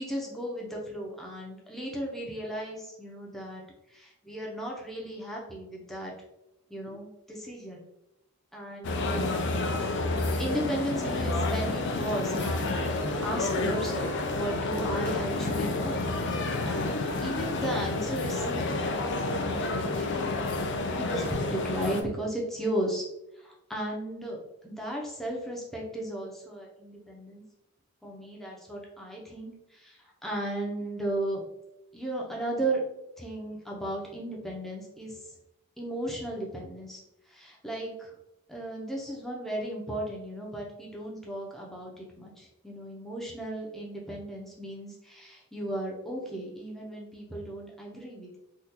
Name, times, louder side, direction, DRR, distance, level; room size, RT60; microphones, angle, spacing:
voice 1, 0.0-3.6 3.9-6.1 6.7-7.8 8.5-9.4 10.4-23.0 23.4-24.4 24.6-27.4 28.0-31.4 31.9-32.8 33.2-35.2 35.8-37.0 37.3-38.1 38.5-48.4, right 1 dB, ahead, -2 dB, 0.6 m, -35 dB
sound 1, 8.8-22.0, left 2 dB, 55° left, 0.4 m, -29 dB
3.7 x 2.3 x 2.8 m, 0.88 s
head